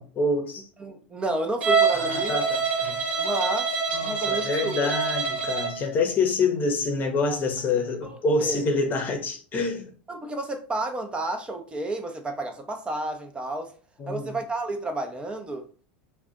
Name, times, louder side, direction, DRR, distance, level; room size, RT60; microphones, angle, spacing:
voice 1, 0.0-0.7 1.9-3.0 3.9-9.9 14.0-14.4, left 3 dB, 35° left, 0.8 m, -27 dB
voice 2, 0.8-2.4 3.2-3.7 4.0-4.9 8.0-8.6 10.1-13.7 14.1-15.7, right 2 dB, 20° right, 0.7 m, -31 dB
Bowed string instrument, 1.6-5.8, right 5 dB, 80° right, 0.8 m, -25 dB
2.4 x 2.3 x 3.7 m
hypercardioid pair, 90°, 6 cm